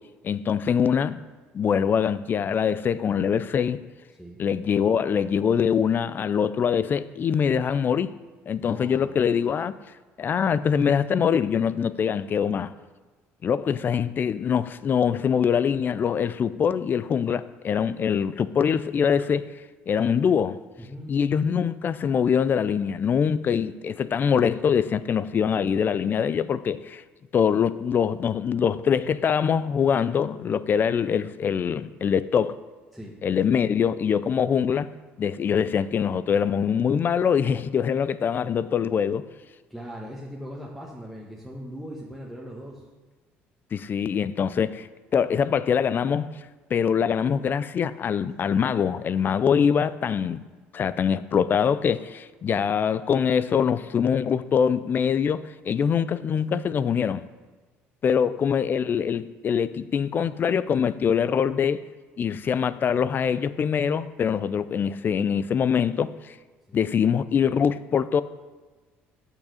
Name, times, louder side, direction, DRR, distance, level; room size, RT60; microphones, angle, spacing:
voice 1, 0.2-1.2 1.5-3.9 4.4-8.2 8.5-9.8 10.2-12.7 13.4-19.5 19.9-20.6 21.1-27.0 27.3-32.6 33.2-34.9 35.2-39.3 43.7-44.9 45.1-46.3 46.7-50.4 50.7-57.2 58.0-61.8 62.2-66.3 66.7-68.2, left 7 dB, 40° left, 0.4 m, -23 dB
voice 2, 8.6-9.2 20.8-21.1 32.9-33.2 39.7-42.8 58.1-58.4 66.7-66.9, equal, ahead, 1.2 m, -40 dB
6.6 x 6.0 x 6.3 m
supercardioid pair, 85°, 5 cm